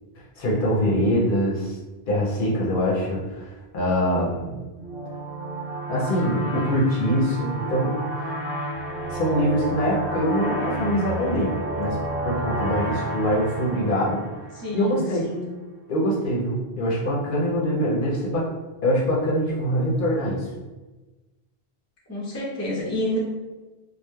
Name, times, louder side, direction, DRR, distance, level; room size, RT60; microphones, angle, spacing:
voice 1, 0.4-1.8 2.1-4.6 5.9-8.4 9.1-11.5 11.8-12.0 12.2-14.2 14.7-15.2 15.9-18.5 18.8-20.5, equal, 60° left, -4 dB, 0.7 m, -24 dB
sound 1, 4.8-15.1, right 2 dB, 40° right, 0.8 m, -31 dB
voice 2, 14.5-15.5 22.1-23.2, left 1 dB, 25° left, -4 dB, 0.4 m, -29 dB
3.0 x 2.1 x 2.2 m, 1.2 s
omnidirectional pair, 1.1 m